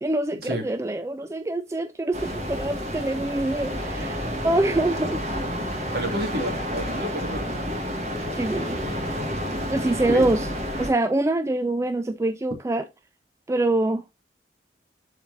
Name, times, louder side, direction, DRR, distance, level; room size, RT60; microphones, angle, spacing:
voice 1, 0.0-5.2 8.4-8.8 9.7-10.5 10.8-12.8 13.5-14.0, right 2 dB, 15° right, 0.3 m, -25 dB
sound 1, 2.1-10.9, equal, 40° right, 1.7 m, -30 dB
voice 2, 5.9-7.8 10.1-10.3, equal, 55° right, 1.9 m, -30 dB
11.0 x 4.4 x 2.6 m
head